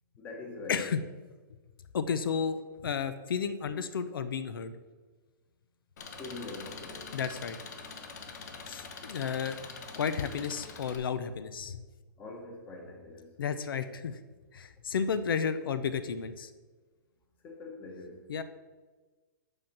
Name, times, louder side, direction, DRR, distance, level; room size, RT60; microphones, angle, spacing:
voice 1, 0.2-0.9 6.2-7.1 12.2-13.4 17.4-18.3, left 2 dB, 15° left, 1.1 m, -43 dB
voice 2, 0.7-1.0 1.9-4.7 7.1-7.6 8.7-9.6 9.9-11.8 13.4-14.2 14.5-16.5 18.3-18.4, left 6 dB, 85° left, 0.7 m, -32 dB
Engine, 6.0-11.0, left 5 dB, 50° left, 1.1 m, -44 dB
8.1 x 5.7 x 5.9 m
hypercardioid pair, 170°, 12 cm